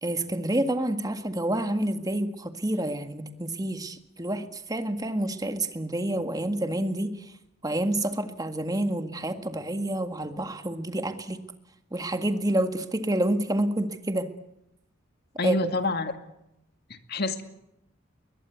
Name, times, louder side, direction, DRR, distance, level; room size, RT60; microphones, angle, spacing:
voice 1, 0.0-7.1 7.6-11.4 11.9-14.3 15.4-15.6, right 1 dB, 20° right, 7 dB, 1.8 m, -28 dB
voice 2, 15.4-16.2 16.9-17.4, left 2 dB, 50° left, 7 dB, 2.2 m, -28 dB
22.0 x 21.0 x 8.3 m, 0.83 s
head